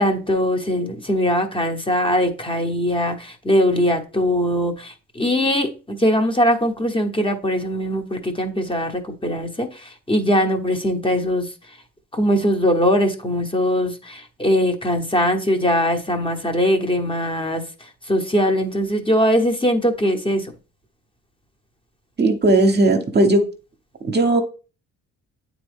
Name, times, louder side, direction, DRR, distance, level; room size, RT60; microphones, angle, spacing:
voice 1, 0.0-11.5 12.1-20.5, equal, 15° left, 1.0 m, -21 dB
voice 2, 22.2-23.5 24.0-24.4, right 2 dB, 35° right, 0.9 m, -16 dB
8.3 x 3.6 x 3.6 m
cardioid pair, 90°, 30 cm